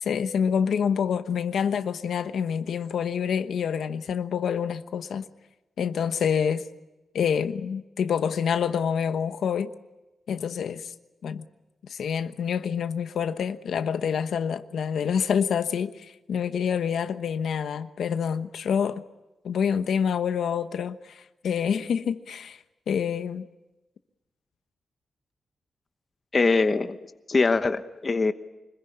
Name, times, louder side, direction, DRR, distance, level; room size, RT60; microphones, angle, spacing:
voice 1, 0.0-5.2 5.8-6.6 7.1-9.7 10.3-10.9 11.2-11.4 11.9-19.0 19.4-22.6 22.9-23.4, left 7 dB, 85° left, 1.1 m, -27 dB
voice 2, 26.3-27.0 27.3-28.3, left 3 dB, 30° left, 1.0 m, -22 dB
25.5 x 21.0 x 10.0 m
wide cardioid pair, 170°, 0 cm